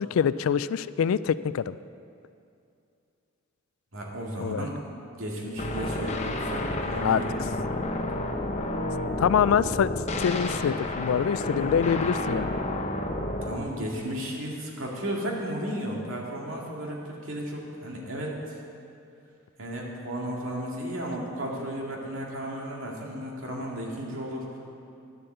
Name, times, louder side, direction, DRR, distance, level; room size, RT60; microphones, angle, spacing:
voice 1, 0.0-1.8 4.4-4.7 7.0-7.2 9.2-9.9 10.2-12.5, left 7 dB, 70° left, 16 dB, 0.3 m, -25 dB
voice 2, 3.9-4.8 5.2-7.4 13.4-18.5 19.6-24.5, equal, 65° right, -2 dB, 2.2 m, -34 dB
sound 1, 5.6-13.6, left 2 dB, 30° left, 0.8 m, -30 dB
10.5 x 7.8 x 7.8 m, 2.6 s
head